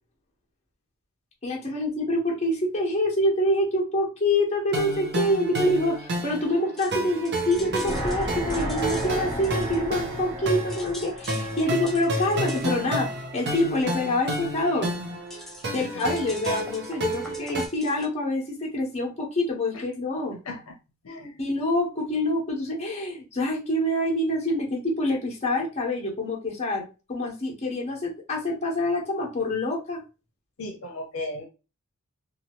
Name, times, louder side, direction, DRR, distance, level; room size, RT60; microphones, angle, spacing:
voice 1, 1.4-14.9 15.7-20.4 21.4-26.8 27.1-30.0, left 1 dB, 30° left, -2 dB, 1.0 m, -26 dB
sound 1, 4.7-17.7, right 1 dB, 55° right, 0.6 m, -31 dB
sound 2, 6.8-10.3 10.6-18.1, left 1 dB, ahead, 0.6 m, -44 dB
sound 3, 7.5-12.7 13.0-13.1, right 1 dB, 15° right, 1.0 m, -34 dB
voice 2, 21.0-21.4 30.6-31.5, left 2 dB, 75° left, 3 dB, 0.7 m, -36 dB
2.7 x 2.3 x 2.9 m, 0.31 s
head